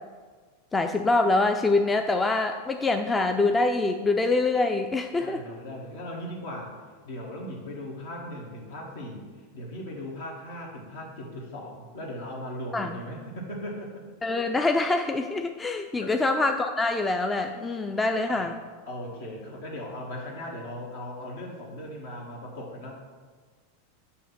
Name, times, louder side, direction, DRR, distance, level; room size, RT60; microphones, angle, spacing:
voice 1, 0.7-5.4 12.7-12.9 14.2-18.6, left 3 dB, 15° left, 5 dB, 0.3 m, -25 dB
voice 2, 5.1-9.3 9.5-14.0 16.0-16.3 17.5-17.9 18.3-22.9, left 1 dB, 75° left, -2 dB, 1.3 m, -38 dB
6.5 x 2.8 x 5.7 m, 1.5 s
hypercardioid pair, 100°, 0 cm